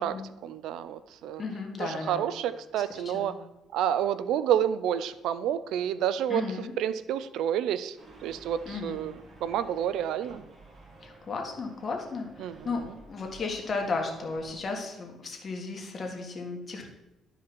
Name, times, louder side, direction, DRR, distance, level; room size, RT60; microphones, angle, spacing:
voice 1, 0.4-1.4 1.8-3.4 3.7-6.4 6.8-8.0 8.2-10.4 12.4-12.6, right 10 dB, 85° right, 14 dB, 0.4 m, -29 dB
voice 2, 1.4-2.2 2.9-3.4 6.3-6.7 8.7-9.0 11.0-16.9, left 4 dB, 40° left, 2 dB, 1.8 m, -34 dB
sound 1, 8.0-14.6, right 2 dB, 35° right, 2.0 m, -53 dB
12.0 x 4.9 x 4.4 m, 0.95 s
cardioid pair, 110°, 0 cm